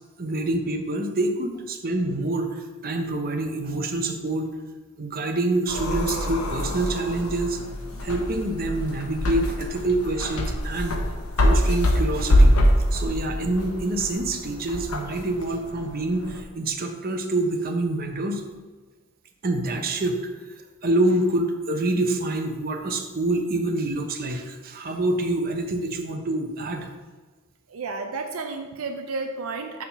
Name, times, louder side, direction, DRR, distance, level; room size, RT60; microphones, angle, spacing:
voice 1, 0.2-4.5 5.0-7.6 7.9-10.9 11.4-12.6 12.9-18.4 19.4-20.2 20.8-26.9, right 2 dB, 45° right, 4 dB, 0.8 m, -26 dB
sound 1, 5.7-16.4, equal, 90° left, 1.0 m, -24 dB
voice 2, 27.7-29.8, right 3 dB, 75° right, 4 dB, 0.6 m, -32 dB
7.0 x 3.6 x 5.7 m, 1.3 s
head